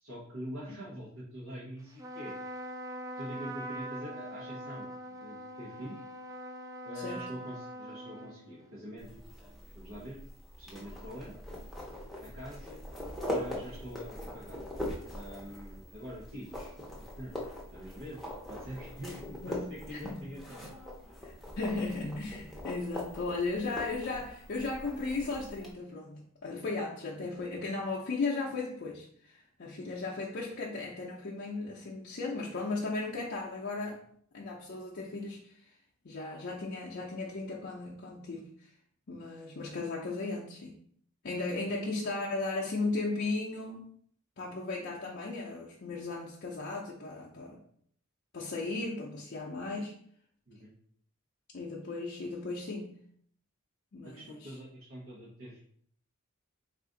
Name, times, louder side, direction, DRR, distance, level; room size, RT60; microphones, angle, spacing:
voice 1, 0.0-2.4 3.2-4.9 5.2-5.9 6.8-9.1 9.7-10.2 10.6-11.3 12.2-12.8 13.2-14.7 15.1-16.7 17.2-17.3 17.7-18.2 18.5-20.6 41.7-41.8 50.5-50.7 54.0-55.6, equal, 75° right, -6 dB, 0.9 m, -44 dB
Trumpet, 1.9-8.8, right 1 dB, 15° right, 0.3 m, -42 dB
voice 2, 7.0-7.3 19.4-19.6 19.9-20.3 21.2-34.0 34.3-35.7 36.0-38.7 39.1-40.7 41.2-43.8 44.4-47.6 48.3-49.9 51.5-53.0 53.9-54.5, left 3 dB, 50° left, -4 dB, 0.5 m, -36 dB
sound 1, 9.0-25.7, left 1 dB, ahead, 0.7 m, -42 dB
3.6 x 2.4 x 3.7 m, 0.63 s
head